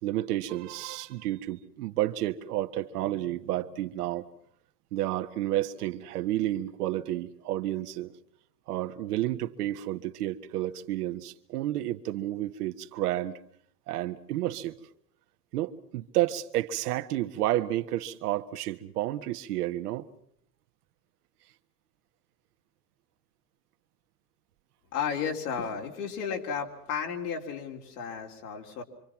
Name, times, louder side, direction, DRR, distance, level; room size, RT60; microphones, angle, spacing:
voice 1, 0.0-4.3 4.9-8.1 8.7-13.4 13.9-14.8 15.5-20.1, right 14 dB, 75° right, 1.6 m, -31 dB
voice 2, 24.9-28.8, left 7 dB, 70° left, 3.8 m, -33 dB
26.0 x 25.5 x 5.9 m
supercardioid pair, 125°, 47 cm